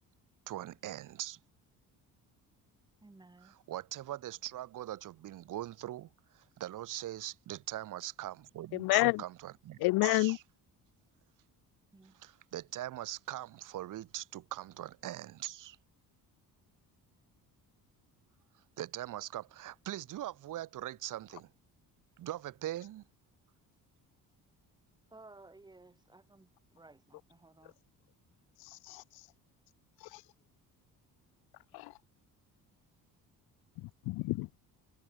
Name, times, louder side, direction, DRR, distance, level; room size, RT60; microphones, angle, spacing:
voice 1, 0.5-1.4 3.4-10.3 12.1-15.8 18.8-21.5 22.2-23.0, right 13 dB, 60° right, 1.3 m, -41 dB
voice 2, 3.0-3.6 11.9-12.2 25.1-27.7, right 2 dB, 10° right, 4.1 m, -57 dB
voice 3, 8.7-9.2 9.8-10.4 27.6-27.7 28.6-29.3 30.0-30.2 31.7-32.0 33.8-34.5, left 21 dB, 85° left, 0.5 m, -30 dB
cardioid pair, 160°, 36 cm